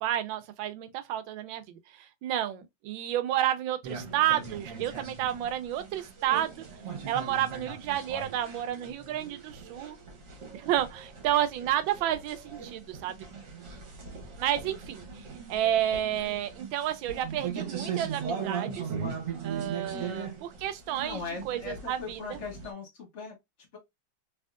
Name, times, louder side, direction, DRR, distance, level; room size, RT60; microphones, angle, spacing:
voice 1, 0.0-6.6 7.1-10.0 10.5-13.3 14.4-15.1 15.5-18.8 19.4-22.4, right 12 dB, 80° right, 1.3 m, -31 dB
sound 1, 3.8-22.7, right 6 dB, 50° right, 1.2 m, -39 dB
voice 2, 19.9-20.2 21.0-23.4, left 5 dB, 40° left, 1.4 m, -39 dB
3.5 x 2.8 x 2.4 m
omnidirectional pair, 2.2 m